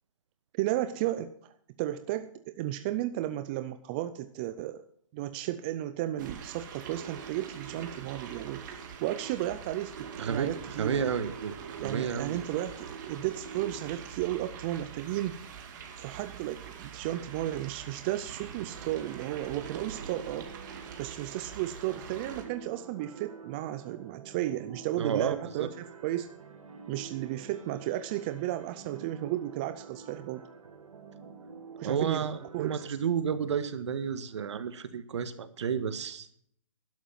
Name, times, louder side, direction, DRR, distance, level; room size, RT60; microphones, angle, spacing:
voice 1, 0.5-1.3 1.8-4.8 5.1-11.1 11.8-15.4 16.0-20.5 21.0-26.3 26.9-30.5 31.8-32.3 32.5-32.8, right 14 dB, 20° right, 11 dB, 0.4 m, -34 dB
sound 1, 6.2-22.4, right 7 dB, 35° right, 2.4 m, -44 dB
voice 2, 10.2-10.5 10.8-11.5 11.8-12.4 25.0-25.7 31.8-36.3, right 7 dB, 60° right, 12 dB, 1.6 m, -31 dB
sound 2, 18.7-32.9, right 5 dB, 80° right, 2.6 m, -48 dB
12.5 x 11.5 x 5.7 m, 0.63 s
hypercardioid pair, 160°, 17 cm